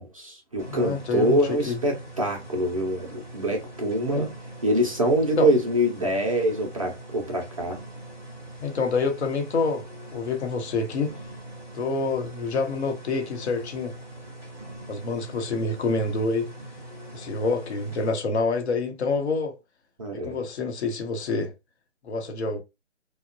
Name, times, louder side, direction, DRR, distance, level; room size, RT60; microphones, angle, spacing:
voice 1, 0.0-4.3 4.6-7.8 20.0-20.4, right 1 dB, 30° right, 0.4 m, -25 dB
sound 1, 0.6-18.1, right 1 dB, 10° left, 0.7 m, -42 dB
voice 2, 0.7-1.8 4.1-4.3 5.4-5.5 8.6-9.9 10.1-11.1 11.7-13.9 14.9-16.5 17.1-19.5 20.2-21.5 22.0-22.6, left 4 dB, 65° left, 0.9 m, -27 dB
2.9 x 2.1 x 2.5 m
hypercardioid pair, 155°, 35 cm